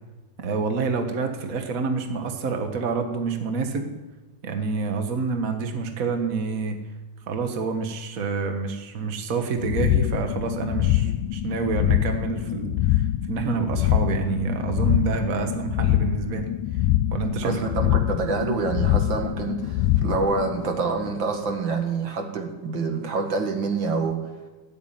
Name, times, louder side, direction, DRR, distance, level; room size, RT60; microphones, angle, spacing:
voice 1, 0.4-3.9 4.4-6.8 7.3-16.5 17.1-17.6, right 4 dB, 60° right, 5 dB, 0.9 m, -27 dB
sound 1, 9.6-21.4, left 13 dB, 85° left, 2.2 m, -24 dB
voice 2, 17.4-24.2, right 4 dB, 45° right, 4 dB, 2.2 m, -27 dB
18.0 x 8.3 x 9.3 m, 1.2 s
omnidirectional pair, 3.6 m